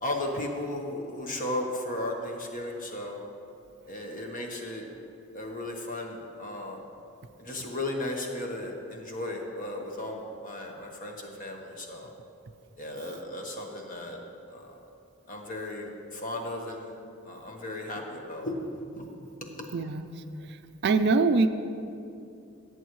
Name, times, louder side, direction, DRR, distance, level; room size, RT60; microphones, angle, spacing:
voice 1, 0.0-3.2 3.9-4.9 5.3-6.8 7.4-12.1 12.8-14.2 14.5-14.7 15.3-17.0 17.2-19.1 19.4-19.7, left 1 dB, 35° left, 1 dB, 1.2 m, -35 dB
voice 2, 19.7-20.1 20.8-21.5, right 4 dB, 50° right, 9 dB, 0.4 m, -22 dB
17.5 x 8.0 x 3.1 m, 2.7 s
head